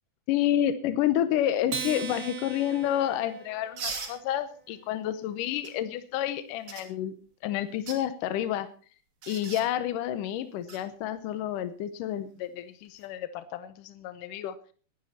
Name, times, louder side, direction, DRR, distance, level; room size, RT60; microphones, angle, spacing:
voice 1, 0.3-7.1 7.4-8.7 9.3-14.6, left 11 dB, 80° left, 13 dB, 2.4 m, -29 dB
Acoustic guitar, 1.7-4.3, right 5 dB, 40° right, 1.5 m, -38 dB
sound 1, 3.8-4.2 5.6-5.7 6.7-6.9 7.7-8.0 9.2-9.7 10.7-10.8 12.9-13.1, right 4 dB, 60° right, 4.6 m, -37 dB
19.0 x 11.5 x 4.3 m, 0.39 s
omnidirectional pair, 3.8 m